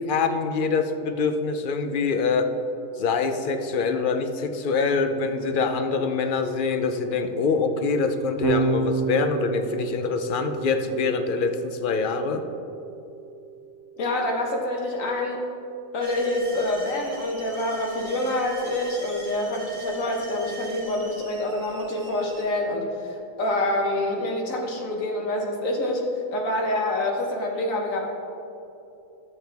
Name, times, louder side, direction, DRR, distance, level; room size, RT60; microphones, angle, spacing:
voice 1, 0.1-2.5 3.0-12.4, left 4 dB, 55° left, 8 dB, 0.6 m, -25 dB
Electric guitar / Bass guitar, 8.4-14.8, right 4 dB, 85° right, 1.4 m, -32 dB
voice 2, 14.0-15.4 15.9-26.0 26.3-28.0, left 1 dB, 80° left, 0 dB, 1.5 m, -26 dB
sound 1, 16.0-22.5, right 2 dB, 35° right, 1.1 m, -42 dB
12.0 x 7.7 x 3.4 m, 2.8 s
omnidirectional pair, 1.4 m